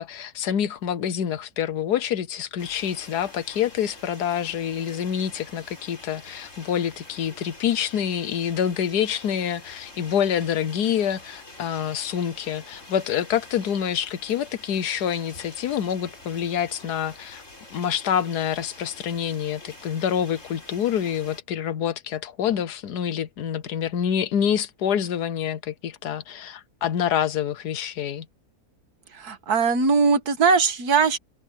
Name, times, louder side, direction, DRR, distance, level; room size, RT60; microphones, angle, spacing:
voice 1, 0.0-17.4 17.7-28.3, left 9 dB, 80° left, 1.5 m, -27 dB
sound 1, 2.6-21.4, left 2 dB, 50° left, 5.0 m, -46 dB
voice 2, 29.2-31.2, right 5 dB, 70° right, 2.0 m, -20 dB
omnidirectional pair, 1.7 m